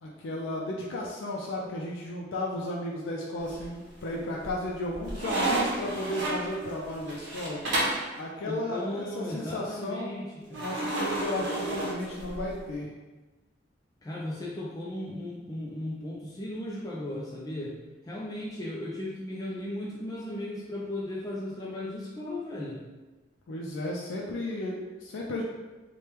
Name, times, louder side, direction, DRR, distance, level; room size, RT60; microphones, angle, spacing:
voice 1, 0.0-7.6 8.2-10.2 10.5-12.9 23.5-25.4, left 1 dB, 90° left, -2 dB, 0.4 m, -34 dB
sound 1, 3.4-4.0 4.4-8.1 10.5-12.6, right 2 dB, 65° right, 0.9 m, -31 dB
voice 2, 8.5-10.7 14.0-22.9, left 1 dB, 20° left, -4 dB, 0.3 m, -36 dB
3.2 x 2.1 x 2.9 m, 1.2 s
head